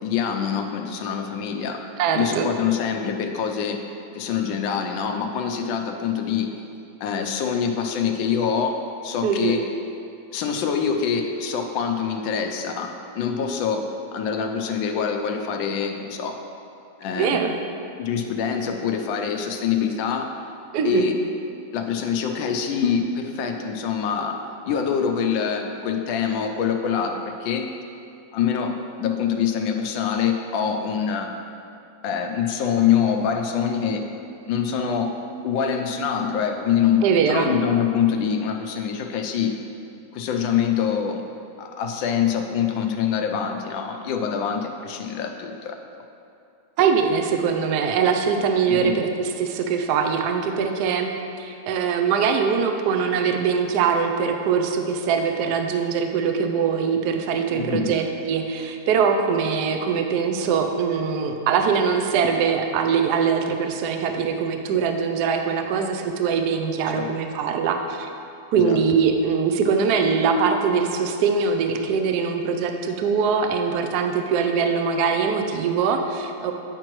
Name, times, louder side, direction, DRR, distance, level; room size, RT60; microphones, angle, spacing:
voice 1, 0.0-1.8 2.1-3.8 4.1-6.5 7.0-8.8 9.0-9.6 10.3-16.4 17.0-17.5 18.0-20.3 20.8-21.2 21.7-24.4 24.7-27.7 28.3-31.3 32.0-34.0 34.5-35.1 35.4-39.6 40.1-41.2 41.6-45.8 48.7-49.0 57.5-57.9 66.9-67.1 68.5-68.8, left 7 dB, 80° left, 4 dB, 1.3 m, -25 dB
voice 2, 2.0-2.5 9.2-9.6 17.1-17.5 20.7-21.0 37.0-37.5 46.8-51.1 51.4-68.1 68.5-76.5, right 6 dB, 70° right, 5 dB, 1.0 m, -22 dB
9.5 x 5.2 x 3.0 m, 2.6 s
omnidirectional pair, 2.1 m